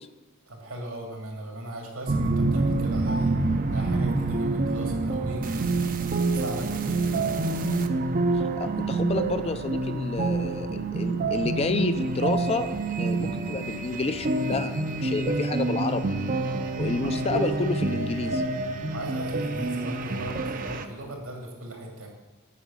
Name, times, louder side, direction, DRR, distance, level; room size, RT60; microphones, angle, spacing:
voice 1, 0.5-3.3 3.7-5.9 6.3-7.1 13.1-13.4 17.0-17.1 18.9-22.1, right 1 dB, 85° right, 0 dB, 2.6 m, -38 dB
sound 1, 2.1-20.8, right 3 dB, 40° right, 0.5 m, -27 dB
voice 2, 8.6-12.7 13.0-16.1 16.8-18.4, left 3 dB, 30° left, 9 dB, 0.5 m, -30 dB
8.3 x 6.0 x 7.2 m, 1.1 s
head